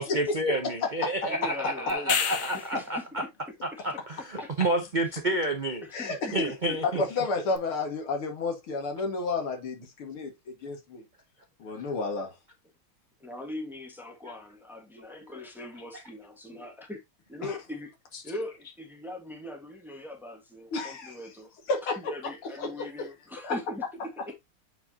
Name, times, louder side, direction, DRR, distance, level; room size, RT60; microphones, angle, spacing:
voice 1, 0.0-3.2 3.8-5.8 6.3-7.0, right 1 dB, 75° right, 0.4 m, -29 dB
voice 2, 1.2-3.1 3.5-4.0 4.4-4.5 5.0-5.2 5.8-6.8 13.2-17.0 17.3-17.9 18.2-21.5 22.0-24.3, left 1 dB, ahead, 1.3 m, -41 dB
sound 1, 1.9-2.9 7.5-7.6, left 7 dB, 65° left, 1.7 m, -29 dB
voice 3, 5.9-6.4 7.0-10.3 10.6-11.0 11.6-12.3 17.4-17.6 20.7-21.2 21.7-22.0 22.6-22.9 23.4-23.6, left 3 dB, 85° left, 2.8 m, -31 dB
8.2 x 4.8 x 2.9 m
omnidirectional pair, 2.3 m